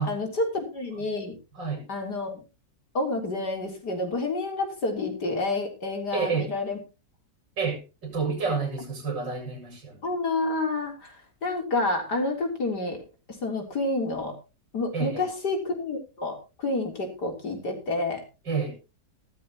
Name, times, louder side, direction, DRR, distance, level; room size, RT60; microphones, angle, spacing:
voice 1, 0.0-1.4 1.9-2.4 2.9-6.8 10.0-11.2 11.4-13.0 13.4-14.4 14.7-18.2, left 2 dB, 65° left, 4.2 m, -29 dB
voice 2, 6.1-6.5 7.6-10.0 14.9-15.2 18.4-18.8, right 5 dB, 90° right, 8.0 m, -29 dB
17.0 x 12.5 x 3.0 m
omnidirectional pair, 1.9 m